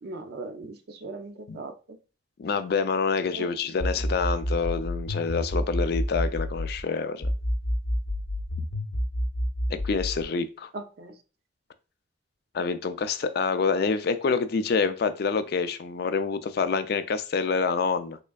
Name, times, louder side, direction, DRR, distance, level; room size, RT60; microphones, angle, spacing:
voice 1, 0.0-2.0 3.3-3.5 10.7-11.1, right 2 dB, 60° right, 0.5 m, -39 dB
voice 2, 2.4-7.3 9.7-10.7 12.5-18.2, left 5 dB, 60° left, 0.4 m, -27 dB
sound 1, 3.8-6.8 7.2-10.2, equal, 85° left, 0.7 m, -28 dB
3.6 x 3.2 x 2.3 m
head